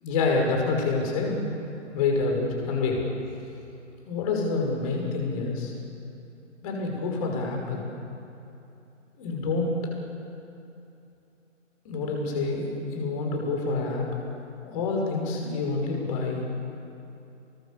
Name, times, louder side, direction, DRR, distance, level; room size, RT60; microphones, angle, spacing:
voice 1, 0.0-1.5 1.9-3.0 4.0-5.7 6.6-7.9 9.2-9.9 11.8-14.1 14.6-16.5, left 3 dB, 30° left, 1 dB, 5.8 m, -27 dB
28.5 x 23.5 x 7.1 m, 2.8 s
figure-of-eight pair, 145°, 38 cm